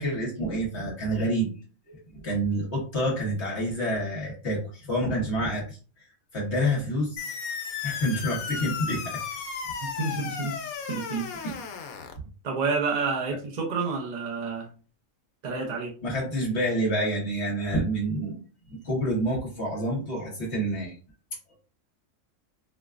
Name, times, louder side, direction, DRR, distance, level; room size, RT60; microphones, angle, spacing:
voice 1, 0.0-1.5 1.9-6.1 6.3-7.3 7.8-9.4 11.4-11.5 16.0-18.4 18.7-21.0, equal, 55° left, -2 dB, 1.2 m, -28 dB
sound 1, 7.2-12.2, left 6 dB, 90° left, 1.1 m, -34 dB
voice 2, 9.8-10.6 10.9-11.3 12.4-14.7 15.4-15.9, right 4 dB, 40° right, -1 dB, 0.6 m, -29 dB
4.3 x 2.2 x 2.4 m, 0.37 s
omnidirectional pair, 1.5 m